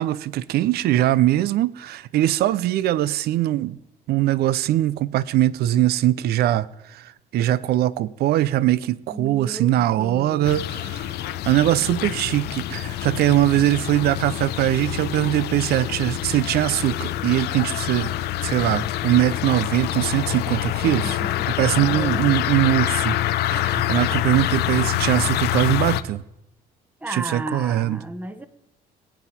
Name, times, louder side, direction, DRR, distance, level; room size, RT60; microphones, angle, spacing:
voice 1, 0.0-3.8 4.1-18.1 18.4-21.2 21.6-26.2 27.1-28.0, right 14 dB, 70° right, 0.6 m, -21 dB
voice 2, 9.1-10.5 20.8-22.2 27.0-28.5, right 1 dB, 10° right, 1.0 m, -34 dB
sound 1, 10.4-26.0, left 13 dB, 75° left, 0.8 m, -26 dB
20.5 x 9.2 x 4.3 m
cardioid pair, 110°, 17 cm